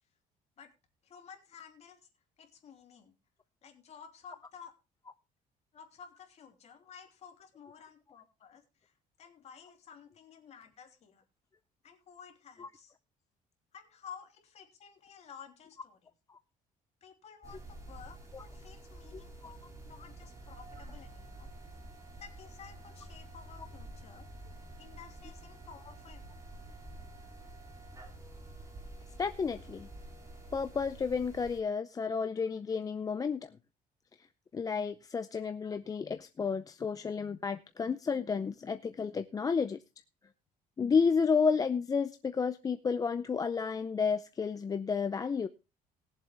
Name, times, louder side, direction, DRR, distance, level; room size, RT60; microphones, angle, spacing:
voice 1, 1.0-2.1 2.4-3.1 3.6-4.7 5.7-11.2 11.8-12.9 13.7-16.0 17.0-21.5 22.2-24.3 24.8-26.2, left 7 dB, 45° left, 3 dB, 3.2 m, -53 dB
sound 1, 17.4-31.6, right 1 dB, 20° right, 3.4 m, -49 dB
voice 2, 19.1-19.6 29.2-29.9 30.5-33.5 34.5-39.8 40.8-45.5, left 5 dB, 25° left, 10 dB, 0.6 m, -31 dB
20.5 x 7.5 x 3.4 m, 0.29 s
cardioid pair, 140°, 15 cm